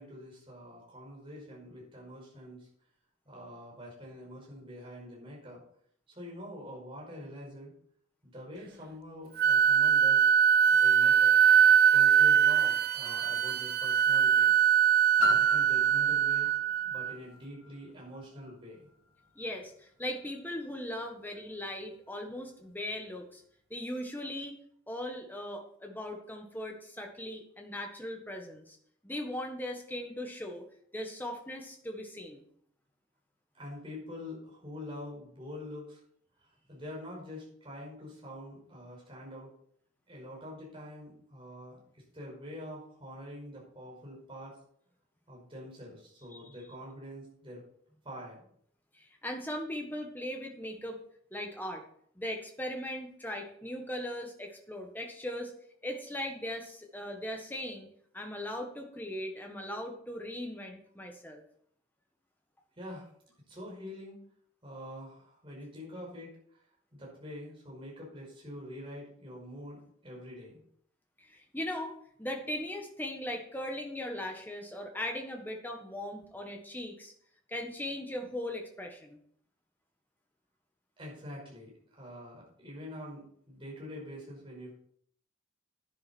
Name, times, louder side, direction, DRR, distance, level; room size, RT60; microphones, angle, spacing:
voice 1, 0.0-2.7 3.3-5.6 6.1-7.7 8.2-10.2 10.7-11.3 11.9-14.5 15.2-16.5 16.8-18.9 33.5-36.0 36.4-39.5 40.1-44.6 45.3-47.6 48.0-48.4 62.8-63.1 63.5-64.2 64.6-66.6 66.9-70.6 73.7-73.8 81.0-84.7, left 1 dB, 25° right, -3 dB, 5.2 m, -45 dB
Wind instrument woodwind instrument, 9.4-17.1, right 8 dB, 45° right, 0.3 m, -23 dB
Piano, 15.2-20.6 21.4-21.5, left 2 dB, 25° left, 5.8 m, -37 dB
voice 2, 19.3-23.4 23.7-24.5 24.9-28.8 29.0-30.6 30.9-32.4 46.3-46.4 48.9-51.0 51.3-51.8 52.1-55.5 55.8-57.9 58.1-61.4 71.2-71.9 72.2-77.1 77.5-79.2, left 1 dB, 10° left, 2 dB, 1.5 m, -39 dB
10.5 x 10.0 x 4.4 m, 0.64 s
head